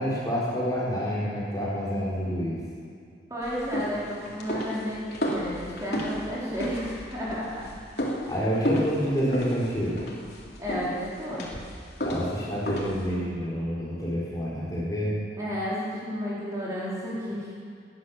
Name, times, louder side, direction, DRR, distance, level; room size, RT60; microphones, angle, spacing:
voice 1, 0.0-2.6 8.3-10.0 12.0-15.1, equal, 20° left, -7 dB, 4.2 m, -28 dB
voice 2, 3.3-7.6 8.0-8.2 10.6-11.6 15.4-17.4, equal, 20° right, -8 dB, 4.2 m, -32 dB
sound 1, 3.4-13.2, equal, 65° left, 3.2 m, -33 dB
19.0 x 10.5 x 7.3 m, 2.4 s
head